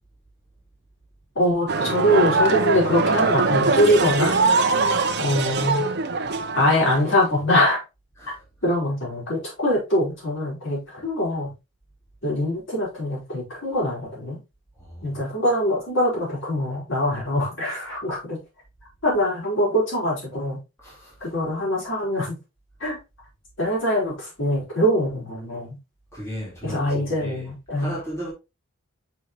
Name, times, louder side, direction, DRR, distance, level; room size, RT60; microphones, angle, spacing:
voice 1, 1.3-4.4 5.2-5.8 6.5-7.8 8.6-11.5 12.2-14.4 15.0-18.4 19.0-20.6 21.2-22.4 22.8-23.0 23.6-25.8 26.6-27.9, left 1 dB, 60° left, 4.8 m, -23 dB
sound 1, 1.7-7.4, right 3 dB, 50° right, 0.8 m, -22 dB
voice 2, 14.8-15.2 20.8-21.3 26.1-27.5 27.8-28.3, equal, 15° left, 3.6 m, -36 dB
7.9 x 5.6 x 3.0 m
head